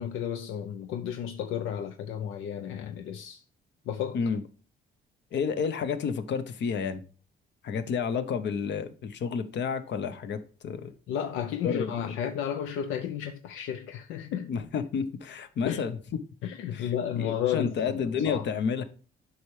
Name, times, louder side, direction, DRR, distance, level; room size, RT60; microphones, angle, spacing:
voice 1, 0.0-3.4 3.9-4.2 11.1-14.5 15.7-15.8 16.4-17.7 18.3-18.4, left 9 dB, 85° left, 0.5 m, -32 dB
voice 2, 5.3-7.0 7.6-10.9 11.6-11.9 14.5-16.0 16.7-18.8, left 6 dB, 65° left, 0.9 m, -30 dB
7.8 x 5.6 x 3.2 m
cardioid pair, 90°, 20 cm